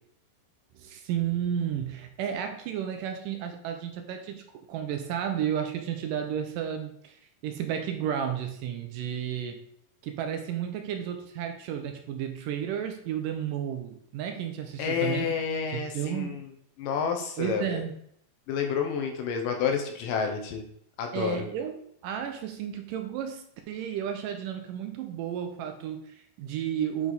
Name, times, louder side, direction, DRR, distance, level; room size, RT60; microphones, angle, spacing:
voice 1, 0.7-9.6 10.0-15.3 15.7-16.4 17.4-17.9 21.1-27.1, right 9 dB, 80° right, 6 dB, 2.2 m, -32 dB
voice 2, 14.8-16.5 16.8-17.8 18.5-20.6 21.0-21.5, left 6 dB, 75° left, 4 dB, 2.4 m, -29 dB
9.5 x 4.7 x 4.0 m, 0.69 s
omnidirectional pair, 4.2 m